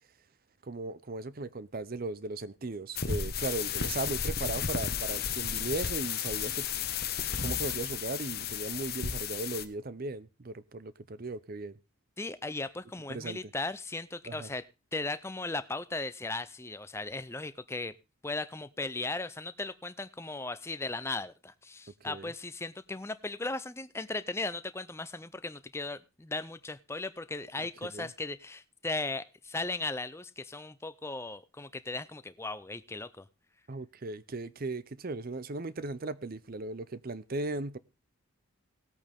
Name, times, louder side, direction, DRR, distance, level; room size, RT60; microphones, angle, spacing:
voice 1, 0.6-6.7 7.4-11.7 13.1-13.4 14.3-14.5 22.0-22.3 27.9-28.1 33.7-37.8, right 3 dB, 40° right, 0.6 m, -37 dB
sound 1, 3.0-9.7, left 7 dB, 45° left, 1.0 m, -33 dB
voice 2, 12.2-14.6 14.9-17.9 18.2-33.2, left 3 dB, 10° left, 0.5 m, -37 dB
18.5 x 8.5 x 3.5 m
head